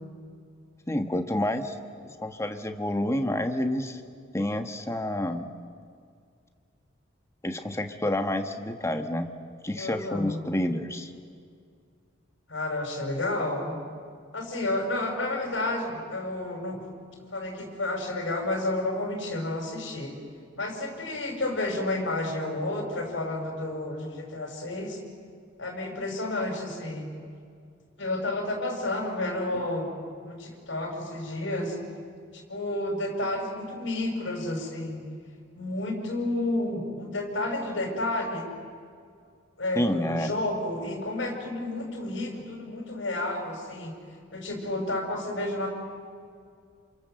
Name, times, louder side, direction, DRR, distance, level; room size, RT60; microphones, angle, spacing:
voice 1, 0.9-1.8 2.0-4.0 4.3-5.5 7.4-9.3 9.6-11.1 39.7-40.3, left 1 dB, 15° left, 6 dB, 1.5 m, -29 dB
voice 2, 9.8-10.4 12.5-13.8 14.3-16.8 17.3-20.1 20.6-25.0 25.6-27.1 28.0-29.9 30.2-31.8 32.3-35.1 35.5-38.5 39.6-43.9 44.3-45.7, left 2 dB, 65° left, 2 dB, 5.7 m, -31 dB
28.0 x 27.5 x 7.7 m, 2.2 s
head